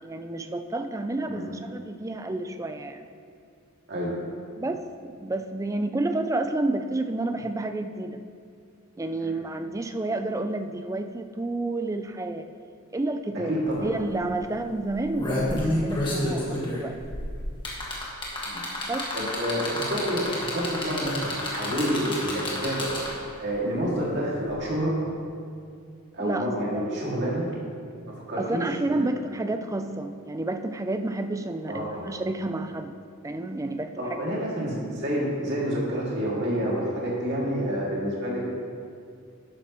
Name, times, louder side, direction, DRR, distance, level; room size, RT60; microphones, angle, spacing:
voice 1, 0.0-3.1 4.6-8.2 9.0-12.5 12.9-13.5 13.8-17.0 18.9-19.1 26.2-26.5 26.7-26.8 28.4-32.9 33.2-34.2, right 2 dB, 15° right, 8 dB, 0.4 m, -30 dB
voice 2, 13.3-13.9 18.4-18.6 19.1-22.9 23.4-25.0 26.1-27.5 28.1-28.6 28.9-29.1 31.7-32.0 34.0-38.4, equal, 50° right, -5 dB, 2.4 m, -28 dB
sound 1, 13.7-13.8 14.1-14.3 14.9-23.3 24.5-24.6, left 1 dB, 20° left, 1.8 m, -29 dB
12.0 x 9.5 x 3.1 m, 2.3 s
head